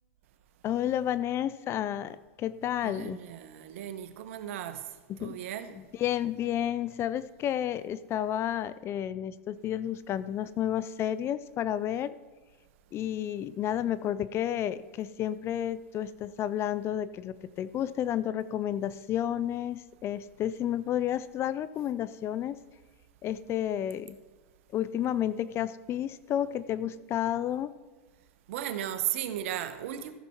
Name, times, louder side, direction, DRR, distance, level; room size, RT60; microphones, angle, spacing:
voice 1, 0.6-3.2 5.1-5.4 6.0-12.2 12.9-22.6 23.2-24.2 24.7-27.7, left 11 dB, 35° left, 0.5 m, -31 dB
voice 2, 2.8-4.8 5.2-5.7 28.5-30.1, right 11 dB, 70° right, 1.0 m, -35 dB
14.0 x 6.9 x 4.5 m
hypercardioid pair, 115°, 7 cm